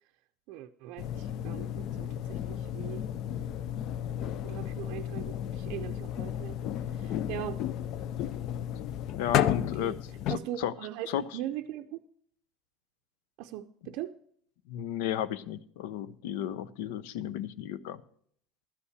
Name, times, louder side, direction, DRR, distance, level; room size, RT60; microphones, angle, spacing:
voice 1, 0.5-3.0 4.4-6.6 6.9-7.6 9.4-9.5 9.8-10.0 10.3-12.0 13.4-14.1, right 12 dB, 60° right, 0.5 m, -40 dB
sound 1, 1.0-10.4, left 10 dB, 50° left, 0.4 m, -33 dB
voice 2, 9.2-10.0 10.3-10.7 11.1-11.4 14.7-18.0, left 10 dB, 85° left, 0.6 m, -34 dB
13.0 x 5.6 x 8.0 m
cardioid pair, 155°, 0 cm